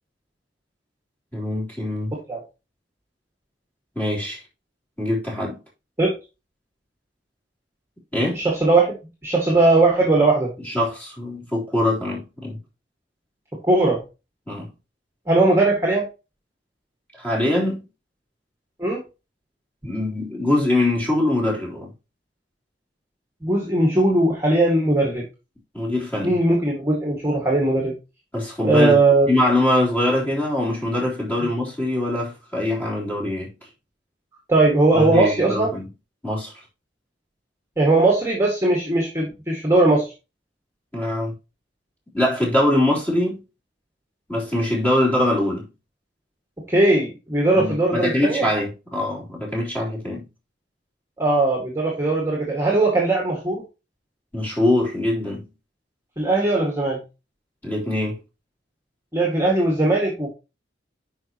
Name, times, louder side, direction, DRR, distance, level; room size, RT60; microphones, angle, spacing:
voice 1, 1.3-2.1 4.0-4.4 5.0-5.6 8.1-8.4 10.6-12.6 14.5-14.7 17.2-17.8 19.8-21.9 25.7-26.4 28.3-33.5 34.9-35.9 36.2-36.5 40.9-41.3 42.1-43.4 44.3-45.7 47.6-50.3 54.3-55.5 57.6-58.2, left 1 dB, 10° left, 3.7 m, -23 dB
voice 2, 8.3-8.9 9.2-10.5 13.7-14.0 15.3-16.1 18.8-19.0 23.4-25.2 26.2-27.9 28.6-29.3 31.4-31.5 34.5-35.7 37.8-40.0 46.7-48.5 51.2-53.6 56.2-57.0 59.1-60.3, right 2 dB, 15° right, 2.0 m, -19 dB
9.5 x 5.5 x 3.0 m
head